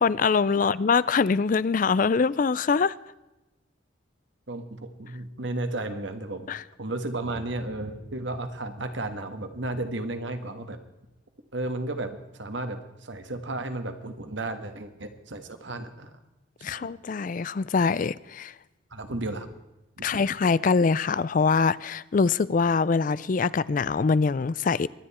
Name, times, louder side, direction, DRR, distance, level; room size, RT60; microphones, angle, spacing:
voice 1, 0.0-2.9 6.5-6.6 16.6-18.5 20.0-24.9, left 5 dB, 45° left, 0.4 m, -23 dB
voice 2, 4.5-6.5 6.8-10.8 11.5-16.1 16.7-16.9 18.9-19.5 20.0-20.1, right 2 dB, 70° right, 1.6 m, -33 dB
23.5 x 10.0 x 4.3 m
head